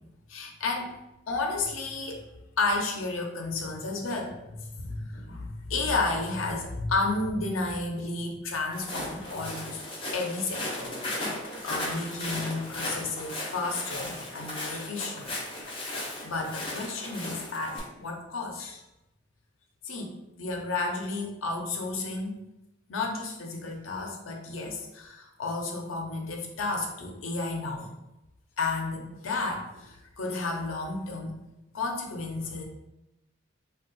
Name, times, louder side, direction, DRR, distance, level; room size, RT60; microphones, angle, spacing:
voice 1, 0.3-0.9 1.3-2.3 2.6-9.8 10.1-11.0 11.6-15.3 16.2-18.8 19.8-22.4 22.9-27.9 28.6-31.3 31.7-32.6, left 3 dB, 85° left, 2 dB, 0.6 m, -32 dB
Walk footsteps, 8.7-17.8, left 1 dB, 25° left, 0.7 m, -36 dB
2.6 x 2.4 x 3.9 m, 0.91 s
head